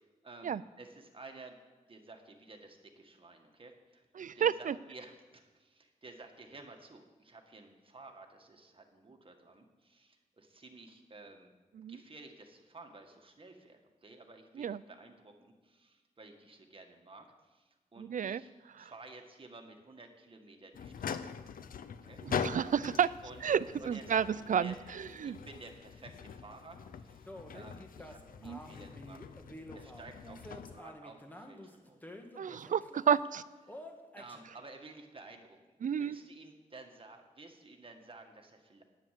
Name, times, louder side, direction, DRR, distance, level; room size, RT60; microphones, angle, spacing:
voice 1, 0.0-4.0 4.3-11.5 11.9-18.5 18.8-21.6 22.0-22.7 23.2-23.4 23.8-24.8 25.2-29.2 29.7-32.1 32.4-32.6 33.6-33.9 34.2-35.6 36.0-38.8, right 3 dB, 40° right, 3 dB, 1.8 m, -53 dB
voice 2, 4.2-4.7 11.8-12.0 14.6-14.8 18.0-18.4 18.8-18.9 22.2-23.1 23.4-24.7 25.2-25.4 28.4-28.6 32.4-33.4 35.8-36.2, right 8 dB, 70° right, 18 dB, 0.4 m, -31 dB
sound 1, 20.7-30.8, left 7 dB, 90° left, 0.5 m, -43 dB
sound 2, 27.3-33.1 33.7-34.4, equal, 10° left, 1.5 m, -49 dB
9.8 x 9.5 x 7.6 m, 1.2 s
wide cardioid pair, 80°, 14 cm